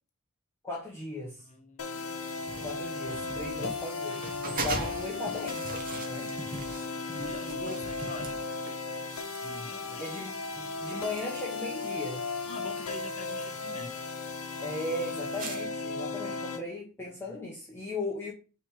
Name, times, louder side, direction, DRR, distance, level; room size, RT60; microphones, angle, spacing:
voice 1, 0.6-1.5 2.6-5.6 6.1-6.3 10.0-12.2 14.6-18.3, left 2 dB, 10° left, 1.2 m, -37 dB
voice 2, 1.5-2.0 6.4-8.5 9.4-10.1 12.5-13.9 17.0-17.2, left 2 dB, 35° left, 0.8 m, -44 dB
sound 1, 1.8-16.6, left 4 dB, 70° left, 0.9 m, -36 dB
sound 2, 1.9-15.6, right 2 dB, 40° right, 1.3 m, -42 dB
6.1 x 3.5 x 4.9 m
head